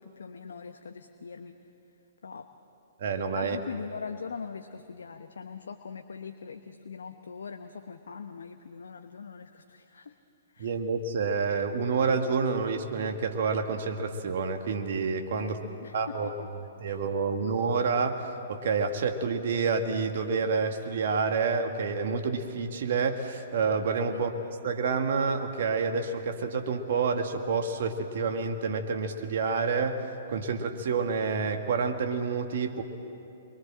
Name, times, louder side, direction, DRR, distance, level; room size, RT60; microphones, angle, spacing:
voice 1, 0.0-1.5 2.2-2.5 3.3-10.1 10.5-10.8 15.4-16.3 16.8-17.0 24.1-24.3, left 5 dB, 75° left, 7 dB, 1.1 m, -42 dB
voice 2, 3.0-3.6 10.6-15.6 15.9-16.3 16.8-32.8, right 5 dB, 60° right, 5 dB, 1.8 m, -28 dB
28.0 x 23.0 x 7.6 m, 2.7 s
figure-of-eight pair, 120°, 0 cm